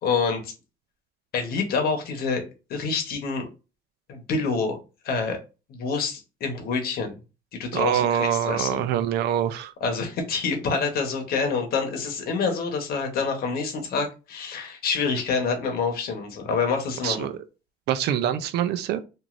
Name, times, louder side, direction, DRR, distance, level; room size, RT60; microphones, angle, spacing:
voice 1, 0.0-0.5 1.3-2.4 2.7-3.5 4.1-4.8 5.0-5.4 5.7-7.2 7.6-8.9 9.8-17.3, left 5 dB, 65° left, 1.0 m, -27 dB
voice 2, 7.7-9.7 17.0-17.4 17.9-19.0, right 10 dB, 75° right, 0.5 m, -25 dB
3.0 x 2.5 x 2.5 m
cardioid pair, 110°, 17 cm